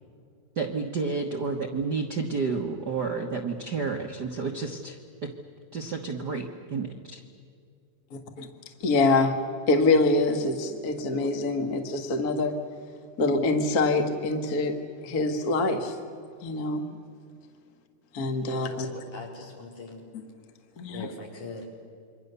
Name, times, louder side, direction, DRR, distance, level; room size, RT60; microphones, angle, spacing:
voice 1, 0.5-5.3 5.7-7.2, right 4 dB, 50° right, 2 dB, 1.2 m, -31 dB
voice 2, 8.1-8.5 8.8-9.4 9.7-12.5 13.2-14.8 15.0-15.9 16.4-16.9 18.1-18.9 20.1-20.2 20.8-21.1, left 2 dB, 40° left, 5 dB, 1.5 m, -25 dB
voice 3, 18.5-20.1 20.9-21.7, left 2 dB, 70° left, -1 dB, 5.7 m, -41 dB
28.0 x 24.0 x 6.9 m, 2.3 s
omnidirectional pair, 3.8 m